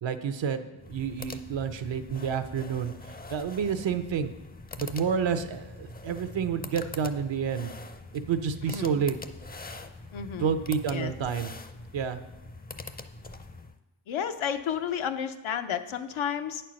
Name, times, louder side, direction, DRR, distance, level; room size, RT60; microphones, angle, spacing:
voice 1, 0.0-2.9 3.3-4.3 4.8-7.7 8.1-9.2 10.4-11.5 11.9-12.2, right 7 dB, 65° right, 9 dB, 0.8 m, -29 dB
sound 1, 0.8-13.8, left 2 dB, 20° left, 0.5 m, -43 dB
voice 2, 8.7-9.0 10.1-10.5 10.9-11.1 14.1-16.6, left 8 dB, 75° left, 8 dB, 0.7 m, -32 dB
8.5 x 4.5 x 6.3 m, 1.0 s
cardioid pair, 60°, 49 cm